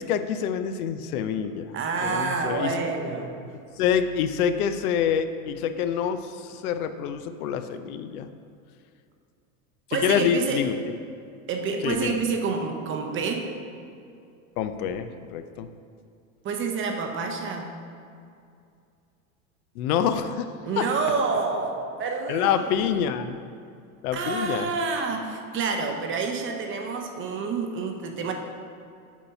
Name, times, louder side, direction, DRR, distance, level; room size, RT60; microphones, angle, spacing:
voice 1, 0.0-1.7 2.0-2.7 3.8-8.3 9.9-10.8 11.8-12.2 14.6-15.7 19.8-20.8 22.3-23.4 24.0-24.7, left 8 dB, 80° left, 10 dB, 0.6 m, -26 dB
voice 2, 1.7-3.3 9.9-10.7 11.5-13.5 16.4-17.7 20.6-22.8 24.1-28.3, right 4 dB, 30° right, 3 dB, 0.6 m, -28 dB
7.2 x 2.8 x 5.6 m, 2.4 s
supercardioid pair, 120°, 43 cm